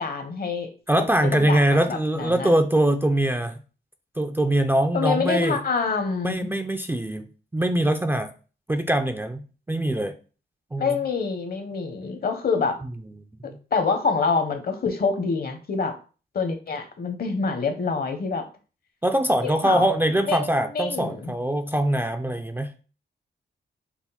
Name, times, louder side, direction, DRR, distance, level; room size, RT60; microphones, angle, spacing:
voice 1, 0.0-2.5 4.9-6.5 10.8-12.8 13.7-16.0 16.3-18.5 19.4-19.9 20.3-21.3, left 5 dB, 55° left, 6 dB, 0.9 m, -26 dB
voice 2, 0.9-3.6 4.2-5.6 6.2-7.3 7.5-8.3 8.7-10.2 10.7-11.0 13.4-13.6 19.0-22.8, right 1 dB, 10° right, 6 dB, 0.4 m, -23 dB
5.8 x 2.1 x 4.0 m, 0.36 s
cardioid pair, 100°, 19 cm